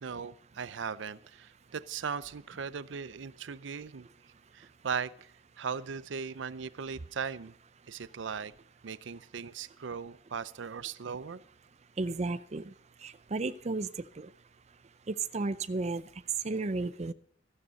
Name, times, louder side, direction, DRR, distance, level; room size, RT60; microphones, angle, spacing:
voice 1, 0.0-4.1 4.5-5.1 5.6-7.5 7.9-8.5 8.8-11.4, right 6 dB, 80° right, 17 dB, 0.5 m, -38 dB
voice 2, 12.0-12.6 13.3-13.9 15.3-16.0 16.4-17.1, right 2 dB, 35° right, 13 dB, 0.5 m, -32 dB
14.0 x 12.5 x 4.0 m, 0.63 s
head